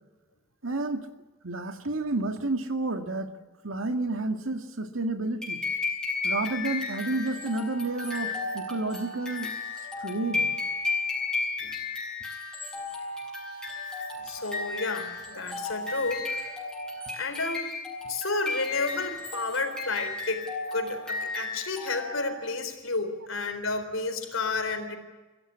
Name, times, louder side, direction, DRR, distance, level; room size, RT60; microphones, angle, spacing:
voice 1, 0.6-1.1 1.4-3.3 3.6-5.6 6.2-9.5 10.0-10.5, right 2 dB, 85° right, 6 dB, 2.0 m, -30 dB
sound 1, 5.4-22.4, left 3 dB, 5° left, 7.3 m, -33 dB
voice 2, 14.2-16.6 17.1-17.7 18.1-20.5 20.7-25.0, left 3 dB, 85° left, 7 dB, 3.8 m, -31 dB
24.0 x 16.5 x 9.9 m, 1.2 s
head